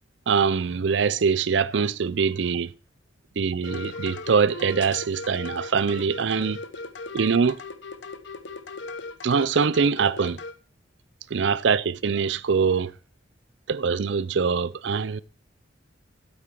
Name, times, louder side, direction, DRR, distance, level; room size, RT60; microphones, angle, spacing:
voice 1, 0.3-2.7 3.4-6.6 7.1-7.6 9.2-10.4 11.3-12.9 13.7-15.2, right 5 dB, 65° right, 0.5 m, -23 dB
sound 1, 3.6-10.5, left 3 dB, 65° left, 1.0 m, -37 dB
8.7 x 8.5 x 4.5 m
head